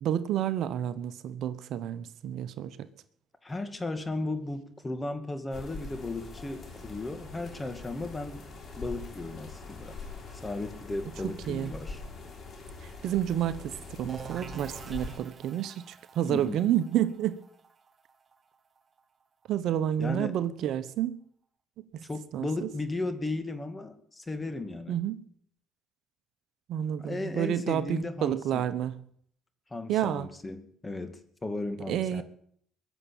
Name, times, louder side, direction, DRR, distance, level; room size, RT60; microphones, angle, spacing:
voice 1, 0.0-2.9 11.2-11.7 12.8-17.4 19.5-21.2 21.9-22.0 22.3-22.7 24.9-25.2 26.7-29.0 29.9-30.3 31.9-32.2, right 11 dB, 65° right, 1.0 m, -30 dB
voice 2, 3.4-8.5 8.8-10.0 10.3-12.0 16.3-16.7 20.0-20.4 22.0-24.9 27.0-28.6 29.7-32.2, left 2 dB, 20° left, 2.2 m, -35 dB
sound 1, 5.5-15.2, left 3 dB, 50° left, 5.7 m, -43 dB
sound 2, 14.1-19.7, right 6 dB, 40° right, 1.1 m, -48 dB
22.0 x 7.3 x 8.7 m
supercardioid pair, 85°, 0 cm